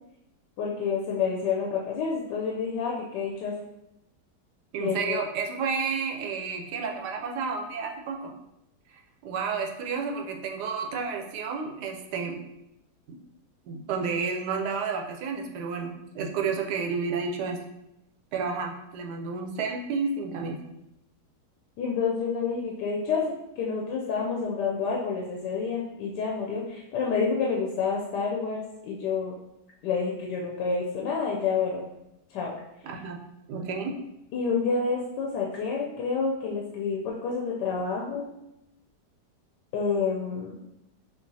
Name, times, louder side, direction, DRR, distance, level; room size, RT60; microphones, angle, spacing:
voice 1, 0.6-3.5 4.8-5.2 21.8-29.4 29.8-31.8 32.3-32.5 34.3-38.3 39.7-40.6, left 5 dB, 90° left, -2 dB, 1.3 m, -29 dB
voice 2, 4.7-8.3 8.9-12.4 13.7-17.6 18.3-20.6 32.8-33.2 33.5-34.0, right 5 dB, 75° right, 2 dB, 1.2 m, -31 dB
6.7 x 2.4 x 2.7 m, 0.87 s
omnidirectional pair, 1.9 m